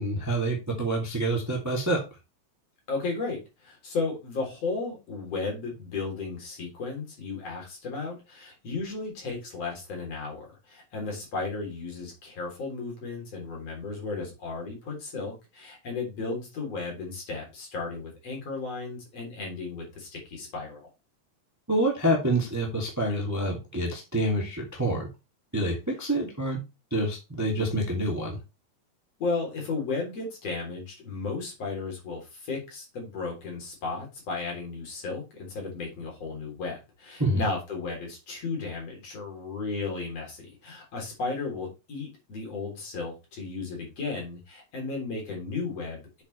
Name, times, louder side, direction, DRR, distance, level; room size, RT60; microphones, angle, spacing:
voice 1, 0.0-2.0 21.7-25.1 25.5-26.6 26.9-28.4 37.2-37.5, right 1 dB, 5° right, -1 dB, 2.1 m, -27 dB
voice 2, 2.9-20.9 29.2-46.2, left 4 dB, 50° left, -1 dB, 4.5 m, -34 dB
8.2 x 7.2 x 3.3 m, 0.27 s
omnidirectional pair, 3.8 m